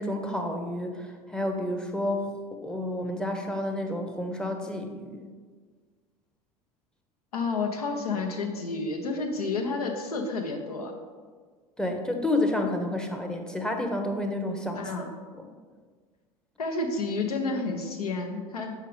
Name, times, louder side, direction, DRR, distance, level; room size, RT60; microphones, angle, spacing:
voice 1, 0.0-2.3 2.6-5.3 11.8-14.8 15.4-15.5, left 1 dB, 5° left, 3 dB, 0.8 m, -30 dB
voice 2, 7.3-10.9 14.7-15.1 16.6-18.7, left 3 dB, 75° left, 3 dB, 0.9 m, -30 dB
6.6 x 5.0 x 3.2 m, 1.5 s
figure-of-eight pair, 75°, 19 cm